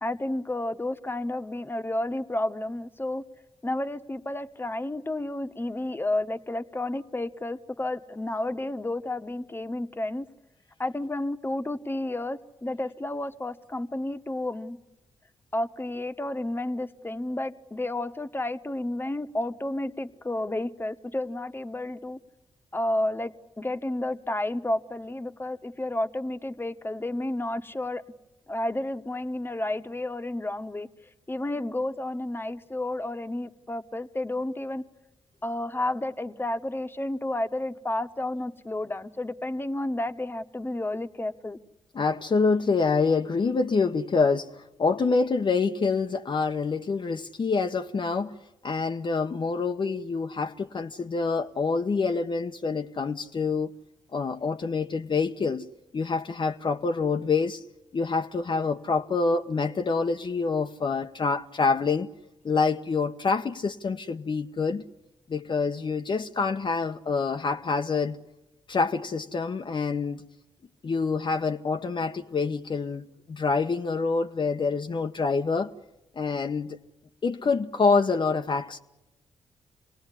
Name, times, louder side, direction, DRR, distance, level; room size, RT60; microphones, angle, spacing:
voice 1, 0.0-3.2 3.6-10.2 10.8-14.8 15.5-22.2 22.7-28.0 28.5-30.9 31.3-34.8 35.4-41.6, left 1 dB, 20° left, 1.4 m, -31 dB
voice 2, 41.9-48.4 48.6-53.7 54.1-57.6 57.9-62.1 62.4-64.8 65.3-68.2 68.7-70.3 70.8-75.7 76.2-76.8 77.2-78.8, left 4 dB, 50° left, 1.0 m, -26 dB
27.0 x 18.5 x 10.0 m
supercardioid pair, 45°, 11 cm